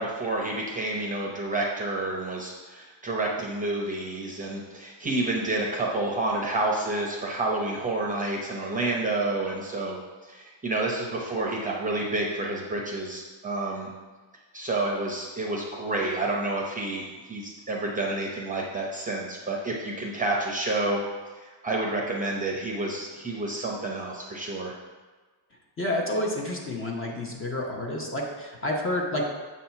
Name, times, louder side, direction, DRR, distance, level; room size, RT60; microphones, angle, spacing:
voice 1, 0.0-10.0 10.2-13.9 14.5-21.0 21.4-24.7, right 2 dB, 15° right, -2 dB, 0.7 m, -29 dB
voice 2, 25.8-29.2, left 1 dB, 25° left, 0 dB, 0.9 m, -29 dB
7.3 x 2.8 x 5.7 m, 1.4 s
cardioid pair, 140°, 49 cm